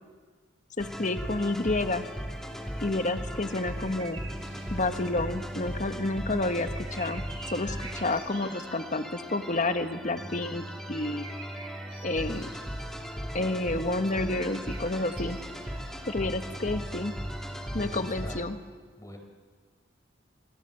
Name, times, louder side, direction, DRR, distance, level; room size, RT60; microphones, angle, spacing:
voice 1, 0.8-2.1 2.8-4.2 4.7-11.2 12.0-12.5 13.3-15.4 16.1-17.1 17.7-18.6, left 2 dB, 45° left, 8 dB, 1.4 m, -30 dB
sound 1, 0.8-18.4, equal, 5° left, 2.9 m, -38 dB
sound 2, 2.2-18.1, right 3 dB, 30° right, 5.4 m, -50 dB
voice 2, 17.7-18.4 19.0-19.2, equal, 20° left, 4 dB, 4.7 m, -43 dB
28.0 x 23.5 x 8.1 m, 1.5 s
head